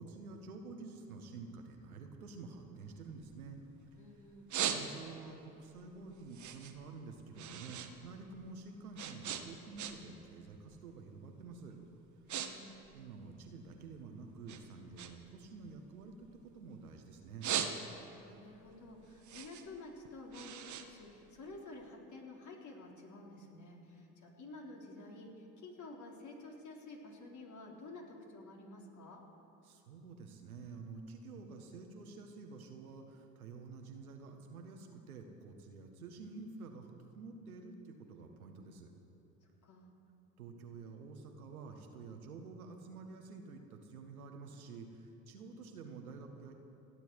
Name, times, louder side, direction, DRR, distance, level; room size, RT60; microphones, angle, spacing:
voice 1, 0.0-3.6 4.7-11.7 12.9-16.3 16.5-17.5 29.6-38.9 40.4-46.5, right 4 dB, 85° right, 3 dB, 1.7 m, -49 dB
sound 1, 2.8-3.9 4.2-5.3 5.7-7.9 8.2-10.2 10.5-10.9 11.5-11.6 12.0-12.5 12.7-14.0 14.5-16.8 17.2-18.2 18.6-21.8, right 9 dB, 40° right, 1.6 m, -40 dB
voice 2, 4.0-4.5 12.3-12.8 18.1-25.3 25.6-29.2 39.6-39.9, left 2 dB, 45° left, -1 dB, 3.9 m, -51 dB
29.0 x 10.5 x 4.8 m, 3.0 s
hypercardioid pair, 65°, 42 cm